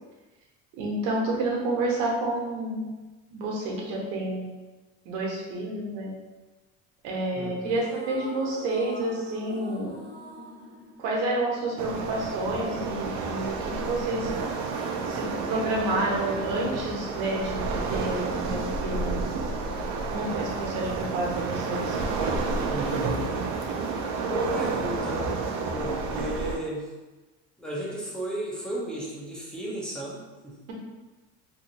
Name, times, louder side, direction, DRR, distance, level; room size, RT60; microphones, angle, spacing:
voice 1, 0.8-2.9 3.3-4.4 5.0-6.1 7.0-10.0 11.0-14.3 15.1-19.1 20.1-22.0, right 2 dB, 80° right, -1 dB, 0.9 m, -29 dB
voice 2, 7.3-7.8 22.7-23.3 24.2-25.3 25.7-26.9 27.6-30.6, right 1 dB, ahead, -5 dB, 0.6 m, -34 dB
sound 1, 7.6-12.1, right 1 dB, 30° right, 0.8 m, -45 dB
Waves surf, 11.8-26.6, right 4 dB, 55° right, 0.5 m, -30 dB
2.8 x 2.6 x 2.7 m, 1.2 s
cardioid pair, 130°, 36 cm